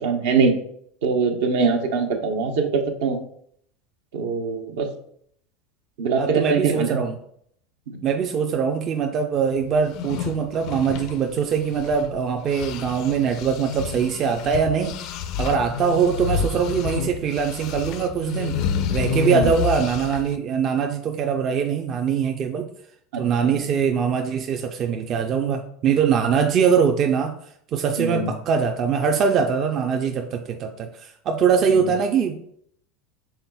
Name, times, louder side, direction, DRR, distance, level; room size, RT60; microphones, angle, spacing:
voice 1, 0.0-0.5 1.0-3.2 4.1-4.9 6.0-7.0 7.9-8.0 19.3-19.4 23.1-23.6 28.0-28.3 31.7-31.9, right 5 dB, 75° right, 4 dB, 0.8 m, -23 dB
voice 2, 6.2-7.2 8.0-18.6 18.9-22.7 23.2-27.3 27.7-32.5, right 6 dB, 45° right, 5 dB, 0.4 m, -22 dB
sound 1, 9.8-12.2 12.5-20.4, left 6 dB, 60° left, 0.4 m, -29 dB
5.6 x 3.8 x 2.2 m, 0.67 s
hypercardioid pair, 95°, 0 cm